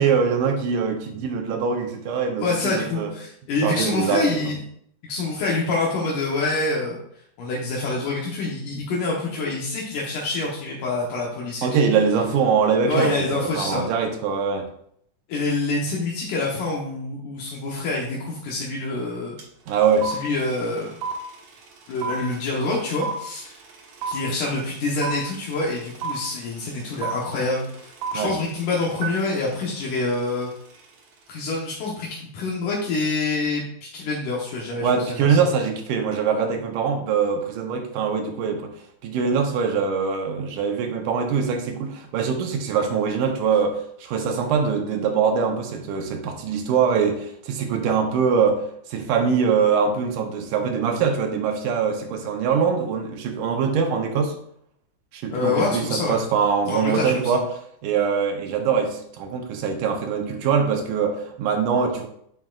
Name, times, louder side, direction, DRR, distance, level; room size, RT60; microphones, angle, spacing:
voice 1, 0.0-3.1 3.6-4.3 11.6-14.7 19.7-20.1 28.1-28.4 34.8-38.7 39.0-48.6 48.9-54.4 55.1-57.4 57.8-62.1, right 6 dB, 85° right, 4 dB, 2.4 m, -23 dB
voice 2, 2.4-4.6 5.0-7.0 7.4-12.0 12.9-13.9 15.3-19.4 20.0-20.9 21.9-23.6 24.1-30.5 31.3-33.6 33.9-35.3 55.3-56.2 56.7-57.2, left 3 dB, 80° left, -4 dB, 2.6 m, -26 dB
sound 1, 19.4-19.5 19.7-30.9, right 5 dB, 65° right, 2.5 m, -33 dB
9.1 x 6.3 x 2.4 m, 0.68 s
omnidirectional pair, 3.6 m